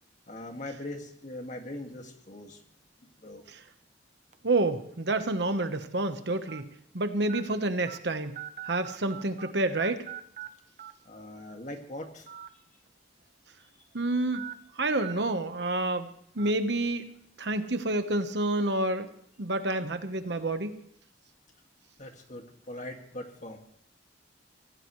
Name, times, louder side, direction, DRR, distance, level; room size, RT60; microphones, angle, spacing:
voice 1, 0.3-2.6 3.0-3.4 11.1-12.3 22.0-23.6, left 1 dB, 40° left, 3 dB, 2.1 m, -41 dB
sound 1, 4.3-4.5 5.3-5.4 6.5-6.6 7.3-7.4 7.9-8.0 8.3-9.5 9.8-10.5 10.8-10.9 12.2-12.5 12.9-13.0 14.3-14.5 15.0-15.1 15.6-15.7 16.4-16.5, right 11 dB, 40° right, 0.8 m, -41 dB
voice 2, 4.4-8.4 8.7-10.0 13.9-14.5 14.8-17.1 17.4-19.1 19.4-20.8, right 2 dB, 65° right, 9 dB, 1.2 m, -29 dB
24.0 x 16.5 x 3.2 m, 0.69 s
head